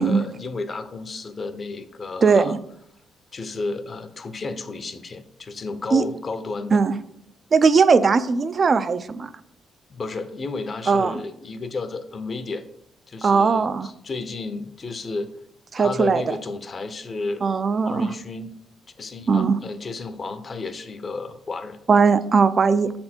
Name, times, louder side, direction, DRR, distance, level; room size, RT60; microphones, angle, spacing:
voice 1, 0.0-2.5 3.3-6.8 9.9-12.6 13.1-15.3 15.8-17.6 17.8-18.5 19.0-21.8, left 3 dB, 40° left, 11 dB, 0.7 m, -32 dB
voice 2, 2.2-2.6 5.9-6.0 6.7-6.9 7.5-9.3 10.9-11.2 13.2-13.9 15.7-16.2 17.4-18.1 19.3-19.6 21.9-22.9, right 5 dB, 40° right, 13 dB, 0.4 m, -19 dB
6.6 x 4.3 x 4.4 m, 0.73 s
cardioid pair, 90°, 0 cm